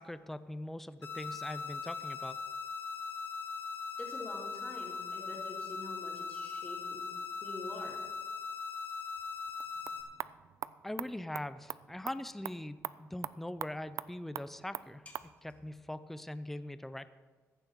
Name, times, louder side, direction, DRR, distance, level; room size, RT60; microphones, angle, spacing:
voice 1, 0.0-2.4 10.8-15.0 15.4-17.1, left 1 dB, 5° left, 13 dB, 0.5 m, -42 dB
sound 1, 1.0-10.0, left 5 dB, 50° left, 2.3 m, -40 dB
voice 2, 4.0-7.1 7.4-8.0 15.0-15.1, left 2 dB, 25° left, -2 dB, 3.3 m, -46 dB
sound 2, 9.5-15.3, right 10 dB, 65° right, 0.3 m, -44 dB
15.0 x 10.5 x 4.5 m, 1.4 s
cardioid pair, 110°, 6 cm